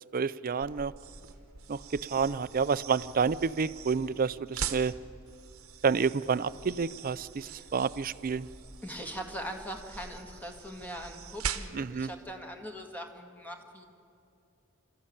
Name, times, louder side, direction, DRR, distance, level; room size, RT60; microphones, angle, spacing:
voice 1, 0.1-0.9 1.7-5.0 5.8-8.5 11.7-12.1, right 5 dB, 40° right, 16 dB, 0.5 m, -29 dB
sound 1, 0.6-11.4, equal, 25° left, 5.4 m, -53 dB
sound 2, 0.9-12.0, right 7 dB, 80° right, 1.0 m, -43 dB
voice 2, 8.8-13.8, equal, 10° left, 4 dB, 1.8 m, -41 dB
27.0 x 13.5 x 8.6 m, 2.6 s
head